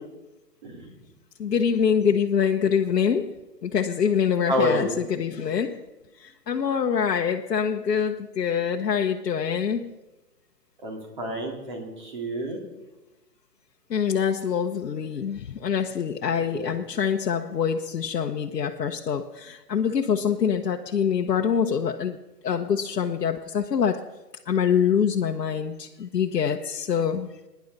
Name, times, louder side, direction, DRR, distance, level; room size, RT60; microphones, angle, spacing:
voice 1, 1.4-3.4 3.6-5.8 6.2-9.9 13.9-22.2 22.4-24.1 24.5-27.3, left 7 dB, 80° left, 2 dB, 1.0 m, -25 dB
voice 2, 4.5-4.9 10.8-12.6 16.5-16.7, equal, 30° right, 1 dB, 2.5 m, -28 dB
22.0 x 10.5 x 4.0 m, 1.1 s
hypercardioid pair, 180°, 48 cm